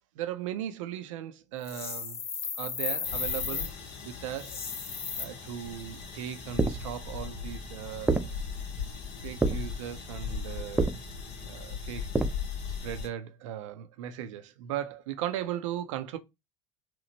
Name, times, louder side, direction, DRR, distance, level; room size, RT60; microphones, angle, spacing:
voice 1, 0.2-2.2 2.6-3.7 4.0-4.6 5.2-8.3 9.2-10.9 11.4-12.1 12.8-16.2, right 11 dB, 80° right, 0.4 m, -37 dB
sound 1, 1.6-3.7 4.4-5.2, left 6 dB, 40° left, 0.6 m, -34 dB
sound 2, 3.0-13.1, left 6 dB, 75° left, 0.7 m, -39 dB
sound 3, 6.4-12.3, right 3 dB, 5° right, 0.3 m, -32 dB
2.8 x 2.1 x 2.7 m
hypercardioid pair, 75°, 16 cm